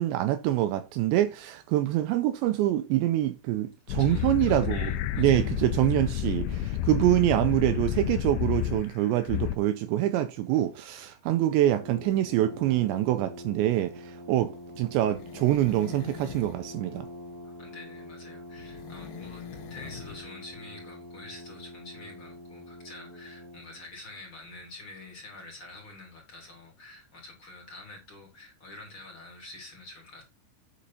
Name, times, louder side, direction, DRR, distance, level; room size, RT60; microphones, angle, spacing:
voice 1, 0.0-4.9 5.2-14.5 14.8-17.1, right 14 dB, 80° right, 2.7 m, -25 dB
sound 1, 3.9-8.9 9.2-9.6, left 11 dB, 85° left, 2.9 m, -30 dB
voice 2, 4.0-5.4 17.3-19.4 19.7-30.2, left 2 dB, 30° left, 3.5 m, -47 dB
Brass instrument, 11.6-23.9, left 1 dB, 25° right, 6.9 m, -45 dB
sound 2, 14.7-16.7 18.5-20.3 20.5-20.6, left 8 dB, 60° left, 2.9 m, -43 dB
10.0 x 6.8 x 4.2 m
omnidirectional pair, 5.5 m